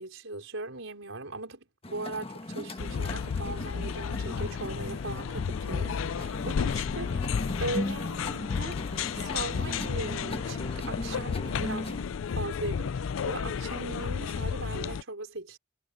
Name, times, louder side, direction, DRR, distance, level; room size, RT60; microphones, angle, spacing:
voice 1, 0.0-11.9 12.3-12.9 13.2-15.6, right 2 dB, 80° right, 4.8 m, -39 dB
sound 1, 1.8-12.0, left 1 dB, 30° left, 1.5 m, -38 dB
sound 2, 2.8-15.0, left 6 dB, 80° left, 0.4 m, -32 dB
head